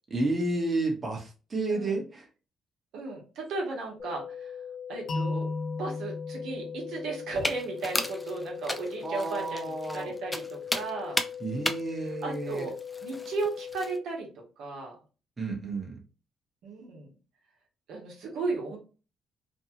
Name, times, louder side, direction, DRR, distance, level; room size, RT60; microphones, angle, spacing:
voice 1, 0.1-2.2 9.0-10.1 11.4-12.7 15.4-16.0, right 2 dB, 30° right, 0 dB, 1.0 m, -31 dB
voice 2, 1.7-2.0 2.9-4.5 4.9-5.5 5.7-11.2 11.9-12.7 13.0-14.3 14.6-15.0 16.6-17.1 17.9-18.8, right 3 dB, 80° right, 0 dB, 1.0 m, -35 dB
sound 1, 4.0-14.0, left 8 dB, 60° left, 1.0 m, -41 dB
sound 2, 5.1-8.0, left 3 dB, 85° left, 0.8 m, -36 dB
sound 3, 7.3-14.0, left 1 dB, 15° left, 0.4 m, -35 dB
2.6 x 2.3 x 2.8 m, 0.33 s
cardioid pair, 90°, 0 cm